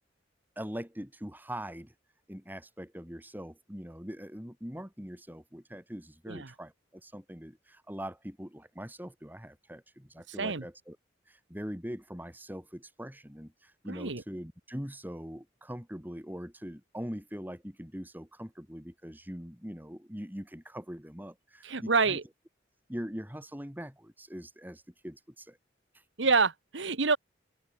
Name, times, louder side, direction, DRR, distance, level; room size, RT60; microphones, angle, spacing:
voice 1, 0.6-1.9 2.3-11.0 11.3-22.2 22.9-25.6, equal, 10° right, 4.0 m, -42 dB
voice 2, 13.9-14.2 21.6-22.2 26.2-27.2, right 4 dB, 75° right, 1.4 m, -27 dB
open air
head